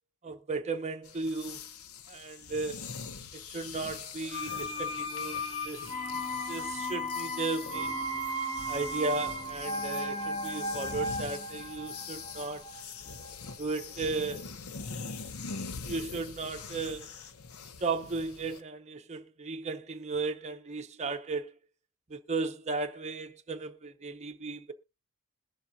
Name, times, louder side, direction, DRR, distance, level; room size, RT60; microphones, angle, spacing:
voice 1, 0.2-1.6 2.1-2.9 3.3-5.9 6.5-8.1 8.7-12.6 13.6-14.5 15.8-17.1 17.8-21.5 22.1-24.7, right 3 dB, 30° right, 0.7 m, -35 dB
sound 1, 1.1-18.6, left 5 dB, 85° left, 0.8 m, -43 dB
sound 2, 4.3-14.0 14.3-14.4, equal, 25° left, 1.3 m, -36 dB
21.5 x 7.2 x 2.6 m
head